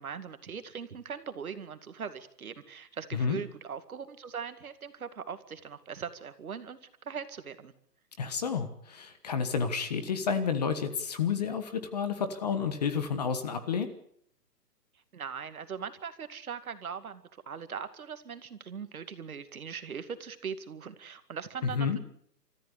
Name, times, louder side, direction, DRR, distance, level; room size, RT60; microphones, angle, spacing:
voice 1, 0.0-6.8 7.0-7.7 15.1-22.0, right 6 dB, 55° right, 10 dB, 2.3 m, -40 dB
voice 2, 8.2-13.9 21.6-22.0, left 6 dB, 25° left, 10 dB, 1.4 m, -30 dB
29.5 x 14.5 x 8.4 m, 0.69 s
hypercardioid pair, 170°, 50 cm